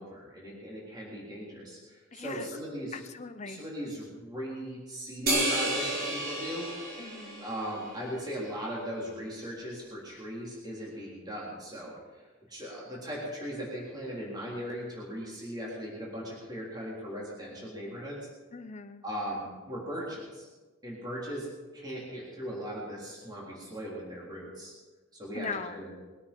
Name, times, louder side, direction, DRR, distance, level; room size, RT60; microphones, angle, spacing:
voice 1, 0.0-3.0 3.4-6.7 7.4-18.2 19.0-20.5 20.8-21.5 21.7-24.7 25.1-25.9, equal, 20° right, -5 dB, 3.8 m, -38 dB
voice 2, 2.1-2.5 2.9-3.6 7.0-7.4 18.5-19.0 25.3-25.9, left 4 dB, 35° left, 9 dB, 0.9 m, -40 dB
sound 1, 5.3-8.0, right 1 dB, 45° right, 3.8 m, -31 dB
21.5 x 9.6 x 5.4 m, 1.3 s
head